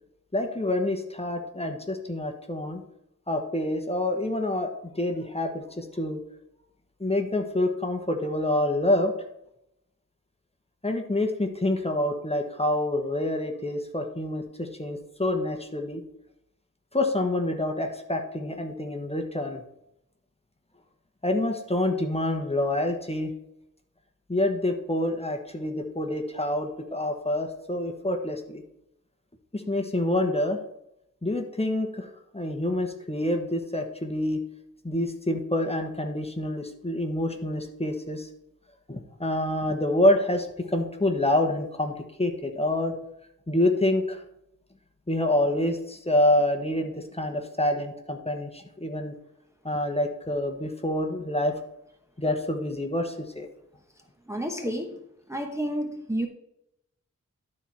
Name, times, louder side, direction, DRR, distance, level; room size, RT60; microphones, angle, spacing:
voice 1, 0.3-2.8 3.3-6.2 7.0-9.1 10.8-16.0 16.9-19.6 21.2-23.3 24.3-28.6 29.5-30.6 31.2-32.1 32.3-34.4 34.8-38.3 38.9-43.0 43.5-44.2 45.1-49.1 49.6-51.5 52.2-53.5, left 1 dB, 20° left, 4 dB, 1.2 m, -27 dB
voice 2, 54.3-55.0 55.3-56.3, equal, 10° right, 2 dB, 1.0 m, -30 dB
12.0 x 4.3 x 4.6 m, 0.81 s
wide cardioid pair, 70°, 32 cm